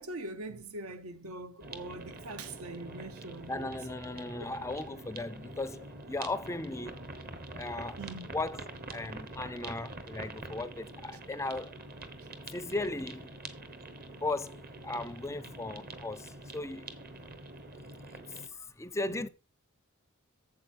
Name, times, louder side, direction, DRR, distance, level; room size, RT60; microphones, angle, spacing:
voice 1, 0.0-3.7 4.4-4.5 8.0-8.3 19.1-19.3, right 2 dB, 70° right, 0.9 m, -42 dB
sound 1, 1.6-18.5, right 2 dB, 45° right, 1.2 m, -45 dB
voice 2, 3.5-7.1 7.5-8.0 8.3-8.6 8.9-11.8 12.5-13.3 14.2-16.9 18.1-19.3, left 2 dB, 15° left, 0.4 m, -37 dB
8.7 x 7.3 x 4.5 m
head